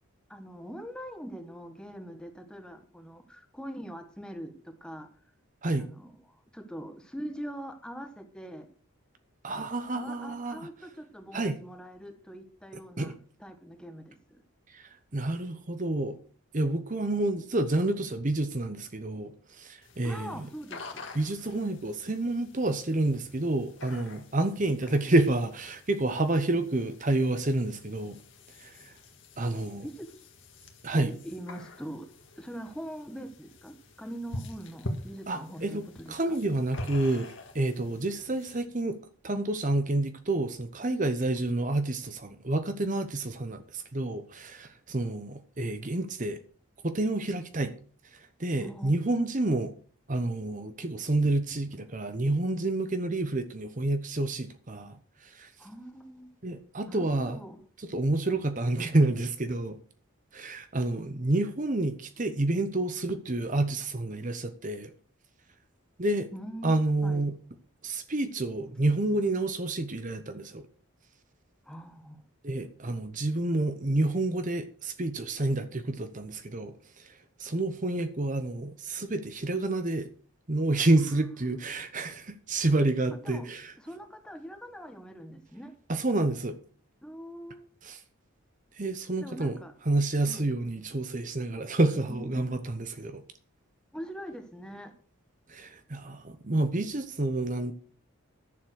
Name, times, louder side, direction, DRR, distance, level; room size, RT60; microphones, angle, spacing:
voice 1, 0.3-5.1 5.8-8.7 9.9-14.4 20.0-21.1 29.8-30.3 30.9-32.1 32.4-36.4 48.6-49.0 55.6-56.3 56.9-57.6 66.3-66.7 67.0-67.2 71.6-72.2 81.0-81.8 83.2-83.5 83.8-85.7 87.0-87.7 89.2-89.7 90.3-90.5 92.0-92.5 93.9-94.9, equal, 5° left, 1.2 m, -43 dB
voice 2, 9.4-10.7 11.3-11.6 13.0-13.1 14.7-16.2 16.5-20.3 21.1-28.2 28.6-28.9 29.4-29.8 30.8-31.1 35.3-39.0 39.2-46.4 46.8-47.7 48.1-49.7 50.1-55.5 56.4-57.4 57.8-59.8 60.3-64.9 66.0-66.3 66.6-67.3 67.8-70.7 72.4-80.1 80.5-83.7 85.9-86.6 87.8-88.0 88.7-89.6 89.9-93.2 95.5-97.7, right 2 dB, 35° right, 0.9 m, -29 dB
sound 1, 19.8-38.6, left 1 dB, 55° left, 1.9 m, -46 dB
11.0 x 7.3 x 6.3 m
head